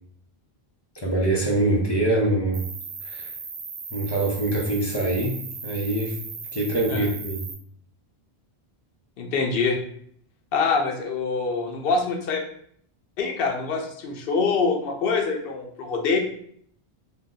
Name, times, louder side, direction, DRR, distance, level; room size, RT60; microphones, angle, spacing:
voice 1, 1.0-2.6 3.0-3.3 3.9-5.3 5.6-6.2 6.5-7.4, right 2 dB, 40° left, -2 dB, 0.4 m, -24 dB
Cricket, 2.5-7.5, right 5 dB, 85° right, 0.9 m, -37 dB
voice 2, 9.2-9.8 10.5-12.4 13.2-16.2, left 4 dB, 70° left, 2 dB, 0.8 m, -25 dB
2.6 x 2.1 x 3.6 m, 0.65 s
omnidirectional pair, 1.1 m